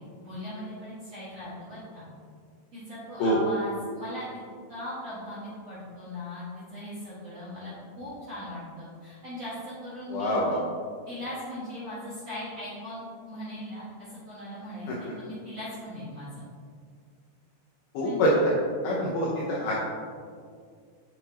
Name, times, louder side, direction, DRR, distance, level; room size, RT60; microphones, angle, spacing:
voice 1, 0.2-2.1 2.7-4.3 4.7-10.4 11.1-16.3 18.0-18.2, left 1 dB, 55° right, -12 dB, 1.8 m, -39 dB
voice 2, 10.1-10.6 14.9-15.0 17.9-18.3 18.8-19.7, equal, 80° left, -5 dB, 2.2 m, -25 dB
7.4 x 5.7 x 2.9 m, 2.1 s
omnidirectional pair, 5.3 m